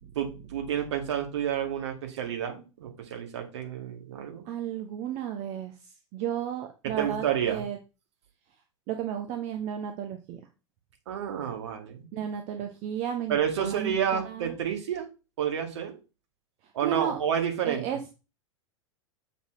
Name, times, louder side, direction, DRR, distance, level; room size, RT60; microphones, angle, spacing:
voice 1, 0.2-4.4 6.8-7.7 11.1-12.1 13.3-15.1 15.4-16.0 16.7-17.8, right 8 dB, 60° right, 4 dB, 2.1 m, -30 dB
voice 2, 4.4-7.8 8.9-10.4 12.1-14.5 16.8-17.2 17.6-18.1, right 9 dB, 40° right, 5 dB, 1.1 m, -33 dB
7.1 x 4.1 x 6.3 m, 0.31 s
figure-of-eight pair, 90°, 16 cm